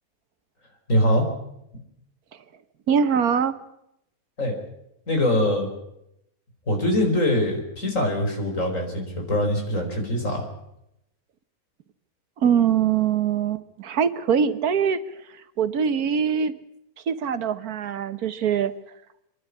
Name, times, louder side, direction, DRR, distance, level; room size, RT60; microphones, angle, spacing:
voice 1, 0.9-1.3 4.4-4.6 5.1-5.7 6.7-10.5, left 1 dB, 60° left, 3 dB, 5.2 m, -23 dB
voice 2, 2.9-3.5 12.4-15.0 15.6-16.5 17.1-18.7, right 7 dB, 85° right, 12 dB, 1.6 m, -22 dB
27.5 x 11.5 x 9.7 m, 0.81 s
omnidirectional pair, 1.5 m